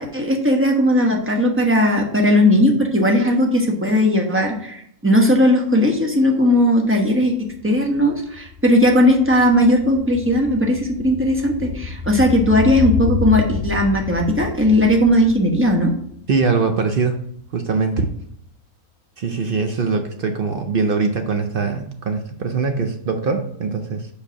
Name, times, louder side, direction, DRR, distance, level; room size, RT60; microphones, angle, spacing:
voice 1, 0.0-7.3 7.6-15.9, left 1 dB, 10° right, 1 dB, 0.9 m, -17 dB
sound 1, 6.5-6.6 6.8-17.2 17.5-17.6, left 5 dB, 15° left, 2.4 m, -29 dB
voice 2, 16.3-18.1 19.2-24.1, right 4 dB, 60° right, 6 dB, 0.6 m, -22 dB
5.1 x 5.1 x 5.4 m, 0.69 s
omnidirectional pair, 1.5 m